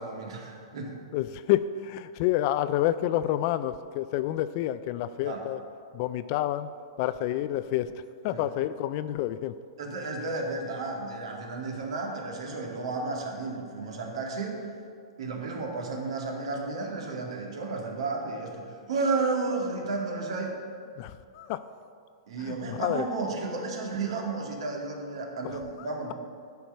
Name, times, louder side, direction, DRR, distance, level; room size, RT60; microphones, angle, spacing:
voice 1, 0.0-1.0 5.2-5.5 8.3-8.4 9.8-14.6 15.2-20.6 22.3-26.1, right 3 dB, 75° right, 1 dB, 2.0 m, -32 dB
voice 2, 1.1-5.6 5.9-6.7 7.0-9.5 21.0-21.6 22.4-23.1 25.4-26.1, left 13 dB, 45° left, 13 dB, 0.3 m, -29 dB
11.5 x 4.7 x 6.8 m, 2.2 s
hypercardioid pair, 145°, 3 cm